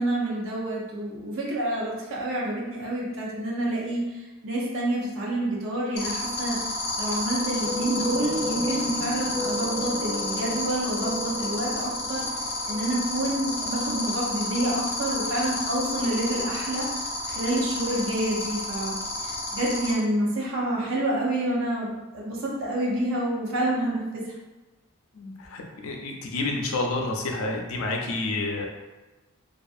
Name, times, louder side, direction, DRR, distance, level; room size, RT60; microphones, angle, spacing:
voice 1, 0.0-6.6 7.0-12.2 12.7-16.9 17.3-24.0, right 1 dB, 65° right, -5 dB, 0.6 m, -28 dB
sound 1, 6.0-19.9, left 2 dB, 50° left, 0.8 m, -30 dB
sound 2, 7.6-13.8, equal, 20° right, 0.3 m, -35 dB
voice 2, 25.1-28.7, left 2 dB, 80° left, 1 dB, 0.5 m, -29 dB
2.6 x 2.4 x 2.4 m, 1.1 s
head